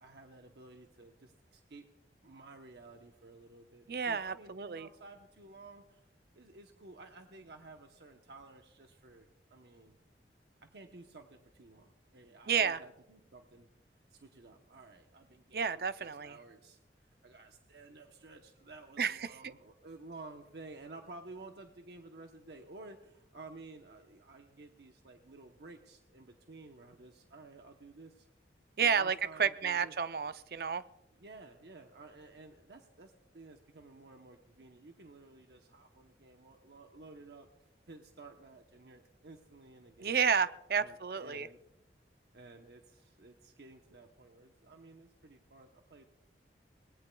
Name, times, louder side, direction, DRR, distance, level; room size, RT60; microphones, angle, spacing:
voice 1, 0.0-1.8 2.2-6.1 6.3-10.0 10.6-13.7 14.1-28.3 28.8-29.9 31.2-40.3 40.8-41.6 42.3-46.1, right 3 dB, 75° right, 4 dB, 0.9 m, -53 dB
voice 2, 3.9-4.9 12.5-12.8 15.5-16.4 19.0-19.3 28.8-30.8 40.0-41.5, right 6 dB, 60° right, 14 dB, 0.5 m, -31 dB
23.5 x 19.5 x 2.3 m, 0.88 s
head